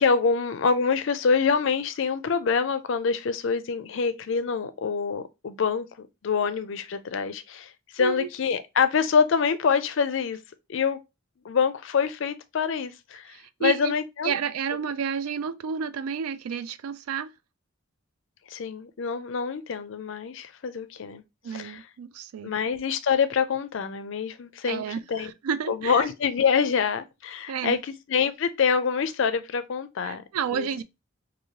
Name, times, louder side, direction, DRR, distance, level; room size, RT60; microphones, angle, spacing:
voice 1, 0.0-10.4 10.7-11.0 11.4-14.3 18.5-21.2 21.5-21.8 22.4-25.3 25.7-30.2 30.5-30.7, left 6 dB, 60° left, 0.4 m, -26 dB
voice 2, 13.3-13.9 14.2-17.3 21.4-22.5 24.6-26.1 27.5-27.8 30.0-30.8, right 7 dB, 90° right, 0.4 m, -31 dB
3.1 x 2.6 x 2.8 m
head